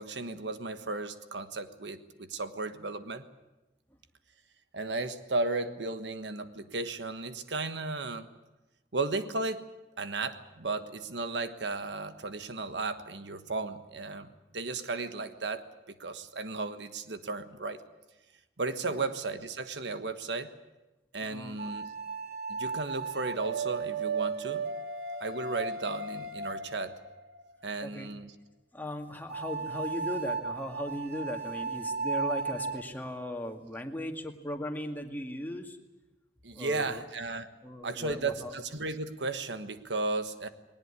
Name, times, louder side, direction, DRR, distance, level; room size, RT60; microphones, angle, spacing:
voice 1, 0.0-3.2 4.7-8.3 8.9-9.7 10.0-15.6 16.0-17.8 18.6-20.5 21.1-21.9 22.5-24.6 25.2-27.0 27.6-28.3 36.4-37.5 37.8-40.5, right 3 dB, 90° right, 10 dB, 1.4 m, -35 dB
voice 2, 21.2-21.7 27.8-28.1 28.7-35.8 36.5-37.0 37.6-38.5, left 1 dB, 10° left, 3 dB, 2.1 m, -38 dB
sound 1, 21.6-27.4 29.3-32.8, right 4 dB, 60° right, 1.5 m, -35 dB
20.5 x 19.0 x 9.8 m, 1.0 s
head